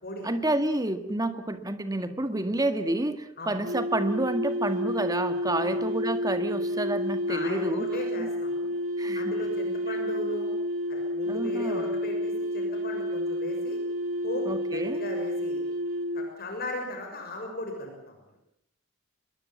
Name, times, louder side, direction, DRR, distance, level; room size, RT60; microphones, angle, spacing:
voice 1, 0.2-7.9 8.2-8.3 9.0-9.3 11.3-11.9 14.5-15.0, right 1 dB, 20° right, 9 dB, 1.9 m, -29 dB
sound 1, 3.6-16.3, equal, 85° right, 3.1 m, -30 dB
voice 2, 7.3-8.7 9.1-10.5 10.9-13.8 14.2-15.6 16.1-18.4, left 1 dB, 50° left, 2 dB, 6.4 m, -37 dB
24.5 x 22.0 x 7.3 m, 0.75 s
head